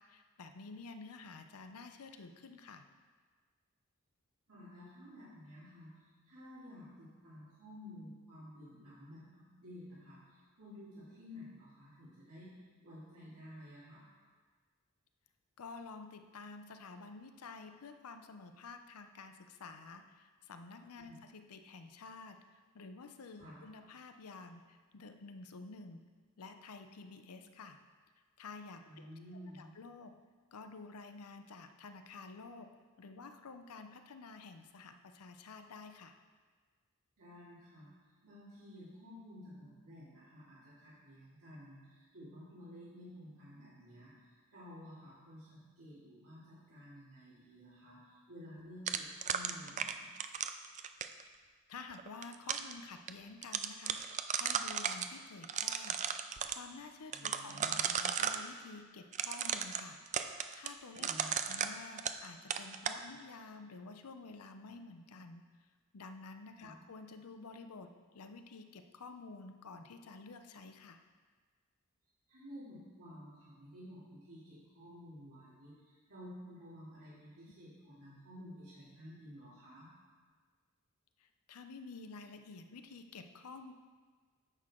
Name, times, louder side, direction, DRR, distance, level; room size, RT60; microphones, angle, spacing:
voice 1, 0.1-2.9 15.6-26.0 26.4-27.8 28.4-29.1 29.5-30.1 30.5-32.7 33.0-36.2 50.2-50.3 51.5-56.0 56.5-60.0 60.5-65.4 65.9-71.0 81.2-83.7, left 4 dB, 90° left, 7 dB, 0.6 m, -50 dB
voice 2, 4.5-12.6 12.8-14.1 21.0-21.2 23.4-23.6 28.8-29.7 37.2-37.9 38.2-50.1 57.1-57.8 60.9-61.6 66.6-66.8 72.3-79.9, equal, 85° right, -13 dB, 2.8 m, -52 dB
sound 1, 48.9-51.2 52.0-52.7 53.1-53.2 53.4-55.1 55.4-56.6 57.1-58.4 59.1-62.3 62.5-63.0, right 8 dB, 35° right, 0.3 m, -35 dB
9.8 x 6.7 x 3.7 m, 1.5 s
head